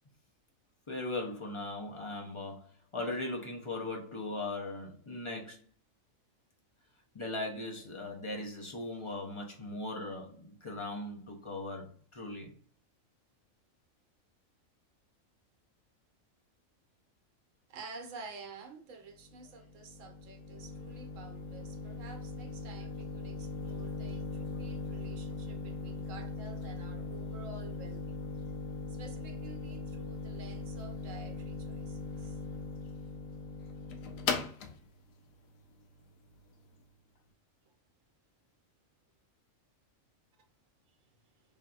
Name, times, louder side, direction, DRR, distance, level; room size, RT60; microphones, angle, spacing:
voice 1, 0.9-5.6 7.1-12.5, left 2 dB, 40° left, 0.4 m, -39 dB
voice 2, 17.7-28.3 28.9-32.4 40.9-41.1, right 4 dB, 70° right, 1.0 m, -50 dB
sound 1, 19.2-36.8, left 3 dB, 80° left, 1.0 m, -40 dB
3.4 x 2.7 x 2.3 m
omnidirectional pair, 1.4 m